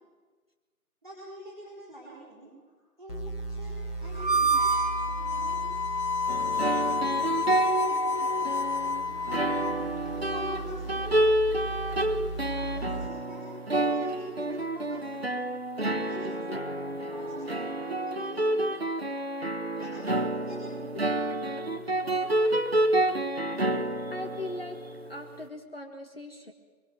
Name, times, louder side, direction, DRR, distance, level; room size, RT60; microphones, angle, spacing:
voice 1, 1.0-3.2 3.5-4.7 5.1-5.6 6.4-8.5 9.1-11.1 12.3-15.4 16.0-16.3 17.1-18.8 19.8-20.0 20.3-21.0, right 1 dB, ahead, -15 dB, 2.2 m, -46 dB
sound 1, 3.1-13.1, right 2 dB, 80° left, 4.1 m, -38 dB
Harmonica, 4.1-9.8, left 1 dB, 25° right, 1.5 m, -28 dB
sound 2, 6.3-25.2, right 1 dB, 40° right, 1.3 m, -29 dB
voice 2, 24.1-24.8 25.1-26.5, left 2 dB, 40° left, 5 dB, 1.6 m, -39 dB
23.5 x 23.0 x 6.2 m, 1.4 s
figure-of-eight pair, 170°, 46 cm